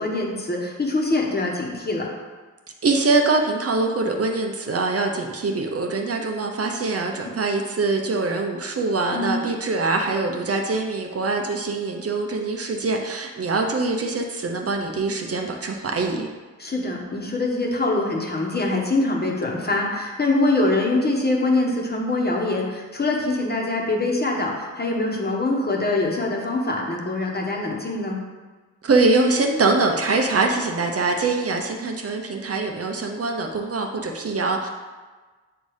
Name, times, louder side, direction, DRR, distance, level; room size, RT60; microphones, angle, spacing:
voice 1, 0.0-2.1 9.1-9.4 16.6-28.2, left 2 dB, 30° left, -1 dB, 1.2 m, -24 dB
voice 2, 2.8-16.3 28.8-34.7, right 3 dB, 50° right, 3 dB, 0.7 m, -23 dB
7.8 x 2.7 x 4.9 m, 1.3 s
cardioid pair, 85°, 32 cm